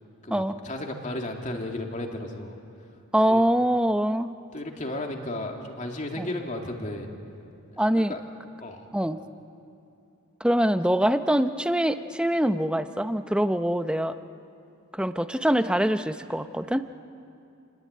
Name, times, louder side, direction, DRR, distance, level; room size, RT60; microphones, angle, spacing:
voice 1, 0.2-2.5 3.3-3.5 4.5-7.1 8.1-8.2 8.6-8.9, left 1 dB, 35° left, 2 dB, 2.6 m, -34 dB
voice 2, 3.1-4.3 6.2-6.3 7.8-8.1 8.9-9.2 10.4-14.1 14.9-16.8, right 1 dB, 5° right, 10 dB, 0.7 m, -24 dB
28.5 x 19.5 x 9.5 m, 2.7 s
head